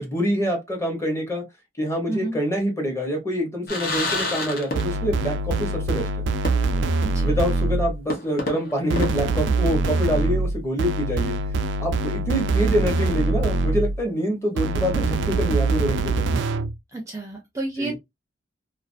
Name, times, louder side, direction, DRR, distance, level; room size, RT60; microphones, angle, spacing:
voice 1, 0.0-1.4 1.8-6.1 7.2-11.4 11.8-16.2 17.8-17.9, equal, 15° left, 0.8 m, -26 dB
voice 2, 2.1-2.4 7.0-7.4 16.9-18.0, right 2 dB, 15° right, 0.5 m, -31 dB
sound 1, 3.7-5.3 5.5-5.6 6.5-7.0 7.3-7.4 8.1-10.1, left 2 dB, 55° left, 0.7 m, -30 dB
sound 2, 4.8-8.0 8.9-14.0 14.6-16.8, right 3 dB, 90° right, 0.3 m, -24 dB
2.4 x 2.4 x 2.4 m
head